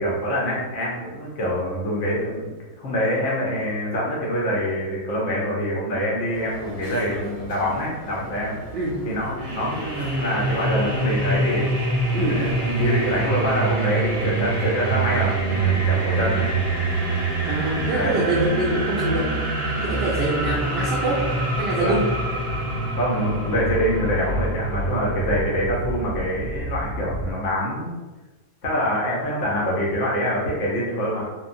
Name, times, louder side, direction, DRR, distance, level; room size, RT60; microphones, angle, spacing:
voice 1, 0.0-2.5 2.8-8.6 9.0-11.7 12.2-16.5 17.9-18.2 19.8-20.2 21.8-21.9 22.9-27.9 28.6-31.3, equal, 60° left, -4 dB, 1.0 m, -25 dB
sound 1, 6.3-13.3, equal, 30° left, 0.9 m, -39 dB
sound 2, 9.4-27.3, right 2 dB, 50° right, 0.9 m, -25 dB
voice 2, 17.5-19.3 19.6-21.2 21.6-22.1, right 2 dB, 75° right, -5 dB, 0.5 m, -25 dB
3.0 x 2.0 x 2.5 m, 1.2 s
omnidirectional pair, 1.5 m